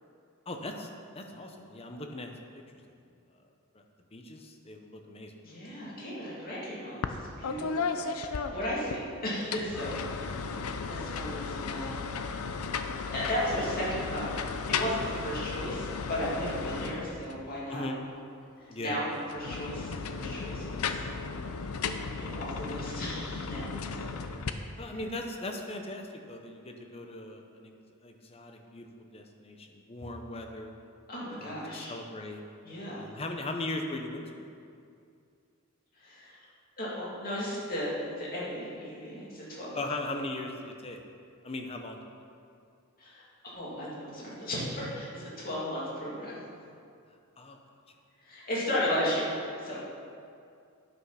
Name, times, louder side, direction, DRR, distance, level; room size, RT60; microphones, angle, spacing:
voice 1, 0.5-0.9 1.1-2.6 3.7-3.8 4.1-5.3 17.7-18.0 18.7-19.0 24.8-27.7 28.0-30.7 31.4-32.4 33.0-34.5 39.7-41.0 41.4-42.0 47.4-47.6, left 2 dB, 25° left, 3 dB, 0.8 m, -39 dB
voice 2, 5.4-10.0 10.9-12.4 13.1-14.3 14.7-17.9 18.8-19.1 19.3-21.0 22.2-24.1 24.9-25.0 26.9-27.0 31.1-32.0 32.6-33.1 36.0-36.4 36.8-39.8 43.0-46.4 48.2-49.3 49.6-49.8, equal, 40° left, -6 dB, 2.4 m, -35 dB
sound 1, 7.0-7.2 7.4-9.0 9.4-17.5 19.2-24.5, left 5 dB, 85° left, 0.5 m, -35 dB
9.4 x 5.8 x 5.7 m, 2.4 s
head